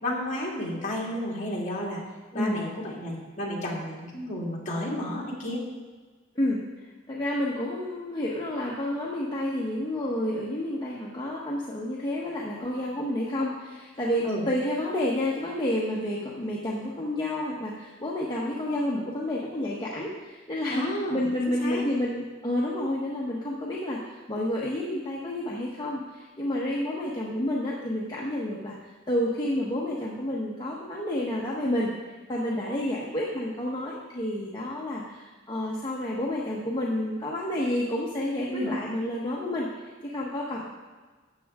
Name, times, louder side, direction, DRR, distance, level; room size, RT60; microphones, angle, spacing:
voice 1, 0.0-2.0 2.3-5.6 14.2-14.4 20.7-21.8 38.5-38.7, left 1 dB, 40° left, -4 dB, 2.6 m, -31 dB
voice 2, 7.1-20.8 21.1-28.8 29.1-31.9 32.3-40.6, left 1 dB, 20° left, -4 dB, 1.1 m, -30 dB
13.0 x 8.4 x 3.6 m, 1.4 s
head